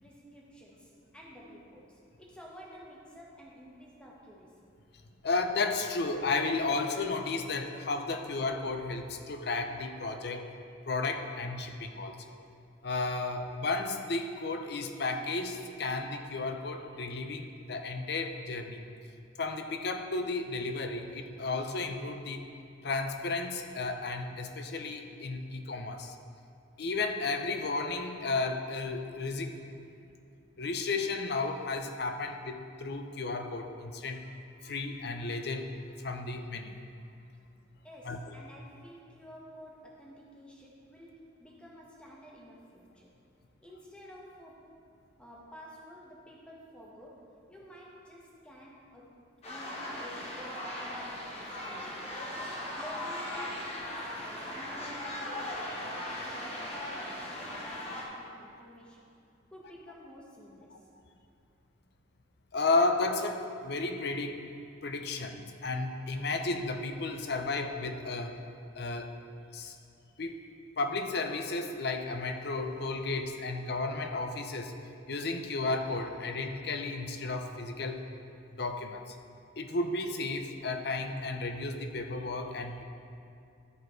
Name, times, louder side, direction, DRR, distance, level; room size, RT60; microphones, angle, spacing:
voice 1, 0.0-4.6 37.8-43.1 43.6-44.8 45.2-49.1 49.5-52.0 52.7-59.1 59.5-60.9, equal, 5° left, -4 dB, 1.3 m, -51 dB
voice 2, 5.2-10.5 10.9-12.2 12.8-18.8 19.4-22.4 22.8-26.2 26.8-29.5 30.6-34.3 34.6-35.7 36.0-36.8 38.1-38.2 62.5-64.4 64.8-68.4 68.8-69.1 69.5-69.8 70.2-70.4 70.8-74.7 75.1-78.1 78.5-79.2 79.6-82.8, left 3 dB, 60° left, 6 dB, 0.7 m, -33 dB
sound 1, 49.4-58.0, left 1 dB, 35° left, 1.2 m, -38 dB
13.0 x 4.8 x 4.5 m, 2.5 s
head